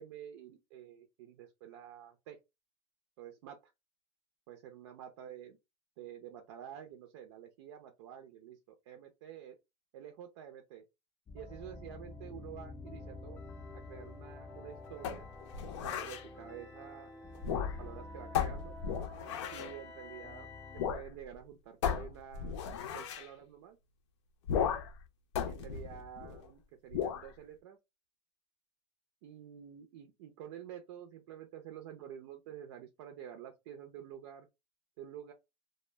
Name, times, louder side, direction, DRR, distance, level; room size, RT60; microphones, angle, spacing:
voice 1, 0.0-2.4 3.2-3.6 4.5-5.6 6.0-9.6 9.9-10.8 11.3-13.4 13.7-15.3 15.8-17.1 17.5-18.8 19.4-20.5 20.7-22.6 22.9-23.8 25.5-27.8 29.2-34.5 35.0-35.3, right 9 dB, 70° right, 0.5 m, -49 dB
sound 1, 11.3-20.9, left 2 dB, 15° left, 0.4 m, -49 dB
sound 2, 15.0-16.2 17.3-18.0 18.3-19.8 20.8-21.1 21.3-21.4 21.8-23.3 24.5-25.0 25.3-26.5 26.9-27.3, left 8 dB, 80° left, 0.5 m, -35 dB
2.1 x 2.1 x 3.2 m
supercardioid pair, 140°, 15 cm